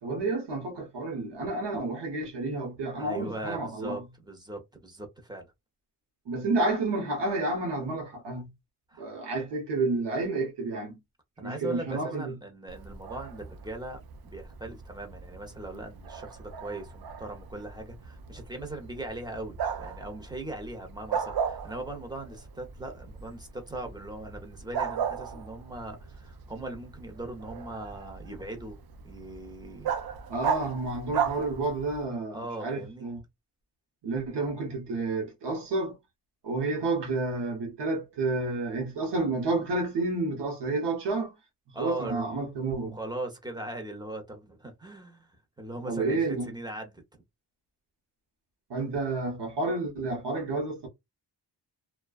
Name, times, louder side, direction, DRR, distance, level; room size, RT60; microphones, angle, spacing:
voice 1, 0.0-4.1 6.3-8.5 9.0-11.0 11.4-12.4 30.3-33.2 34.0-36.0 36.4-41.3 41.7-43.0 45.9-46.5 48.7-50.9, right 3 dB, 90° right, 0.9 m, -30 dB
voice 2, 3.0-5.5 8.9-9.0 11.4-28.8 29.0-29.9 32.3-33.1 41.7-42.4 42.8-47.2, right 2 dB, 10° right, 0.8 m, -39 dB
Bark, 12.7-32.1, right 7 dB, 65° right, 0.5 m, -37 dB
2.3 x 2.3 x 2.3 m
wide cardioid pair, 105°, 40 cm